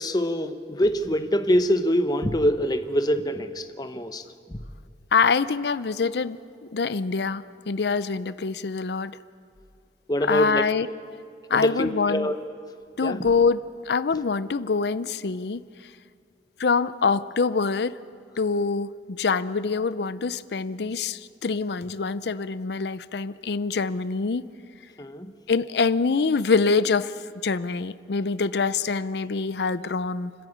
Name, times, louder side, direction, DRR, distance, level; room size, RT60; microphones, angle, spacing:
voice 1, 0.0-4.2 4.5-4.6 10.1-10.6 11.5-12.4 13.0-13.2 25.0-25.3, equal, 25° left, 9 dB, 0.8 m, -24 dB
voice 2, 5.1-6.4 6.7-9.1 10.3-11.2 11.5-12.3 13.0-15.6 16.6-18.0 18.4-24.5 25.5-27.1 27.4-30.3, left 4 dB, 70° left, 15 dB, 0.5 m, -25 dB
29.0 x 10.5 x 8.7 m, 2.3 s
head